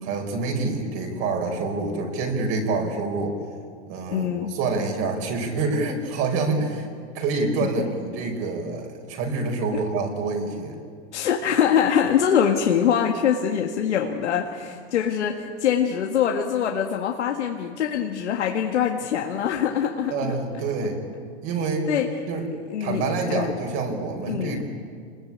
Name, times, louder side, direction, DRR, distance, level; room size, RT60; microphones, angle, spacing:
voice 1, 0.0-3.4 3.9-6.9 7.1-10.7 20.1-21.0 21.4-22.0 22.3-22.4 22.8-24.6, right 3 dB, 40° right, 3 dB, 5.1 m, -27 dB
voice 2, 4.1-4.5 9.7-9.8 11.1-20.3 21.9-22.1 22.7-23.6 24.2-24.6, left 8 dB, 85° left, 2 dB, 1.9 m, -23 dB
27.5 x 21.0 x 8.7 m, 2.1 s
hypercardioid pair, 140°, 34 cm